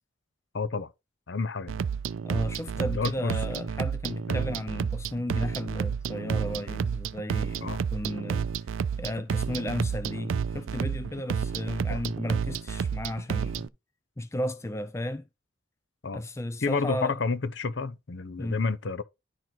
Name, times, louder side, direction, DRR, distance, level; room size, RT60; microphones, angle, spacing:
voice 1, 0.5-0.9 1.3-1.8 2.8-3.6 4.3-4.4 7.6-7.8 11.9-12.0 16.0-16.2 16.6-19.0, left 4 dB, 65° left, 0.7 m, -30 dB
sound 1, 1.7-13.7, right 6 dB, 85° right, 0.4 m, -30 dB
voice 2, 2.2-8.5 9.0-13.7 14.2-15.3 16.1-17.2 18.4-18.6, left 1 dB, 15° left, 0.4 m, -34 dB
10.5 x 3.9 x 4.5 m
head